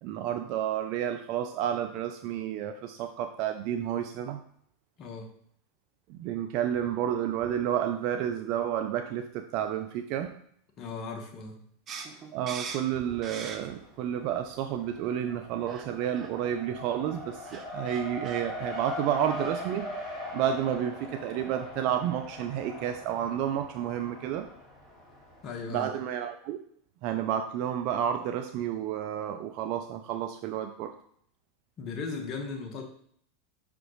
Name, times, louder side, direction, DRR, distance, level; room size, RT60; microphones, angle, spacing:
voice 1, 0.0-4.4 6.1-10.4 12.3-20.1 20.3-24.5 25.7-26.6 27.0-30.9, right 10 dB, 55° right, 7 dB, 0.4 m, -31 dB
voice 2, 5.0-5.3 10.8-11.6 25.4-25.9 31.8-32.8, left 4 dB, 40° left, 4 dB, 1.4 m, -37 dB
sound 1, 11.9-13.9 14.3-15.1 15.7-15.9 16.1-16.3 17.1-17.2 17.4-18.4, right 5 dB, 35° right, 0.8 m, -41 dB
Race car auto racing, 13.1-13.8 14.1-25.5, left 1 dB, 5° right, 1.9 m, -41 dB
6.1 x 5.0 x 3.1 m, 0.64 s
hypercardioid pair, 100°, 0 cm